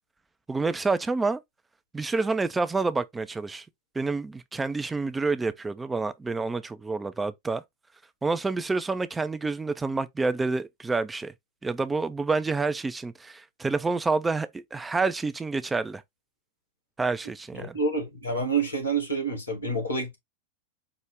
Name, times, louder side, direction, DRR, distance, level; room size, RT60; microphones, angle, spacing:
voice 1, 0.5-1.4 1.9-3.6 4.0-7.6 8.2-11.3 11.6-16.0 17.0-17.8, right 3 dB, 10° right, 0.3 m, -28 dB
voice 2, 17.6-20.2, right 3 dB, 80° left, 1.6 m, -28 dB
4.8 x 2.0 x 3.4 m
figure-of-eight pair, 90°, 0 cm